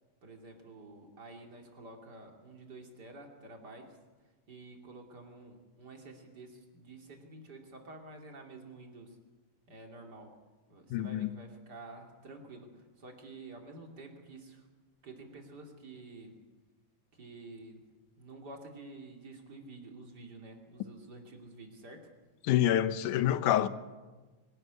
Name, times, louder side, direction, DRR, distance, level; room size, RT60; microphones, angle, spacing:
voice 1, 0.2-4.0 4.5-9.1 9.7-10.3 10.7-14.6 15.0-16.4 17.1-17.8 18.2-22.1, right 2 dB, 35° right, 3.0 m, -50 dB
voice 2, 10.9-11.3 22.4-23.7, left 11 dB, 85° left, 2.4 m, -27 dB
23.5 x 12.5 x 9.5 m
omnidirectional pair, 3.5 m